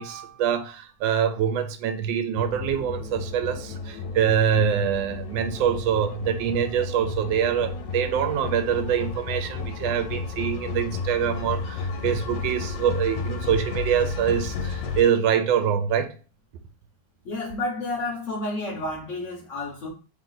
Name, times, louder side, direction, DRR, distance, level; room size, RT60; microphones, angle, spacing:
voice 1, 0.0-16.2, right 8 dB, 80° right, 1.3 m, -25 dB
sound 1, 2.3-15.0, left 4 dB, 75° left, 1.4 m, -32 dB
voice 2, 17.2-19.9, left 2 dB, 50° left, 1.2 m, -30 dB
3.3 x 3.1 x 3.9 m
omnidirectional pair, 2.0 m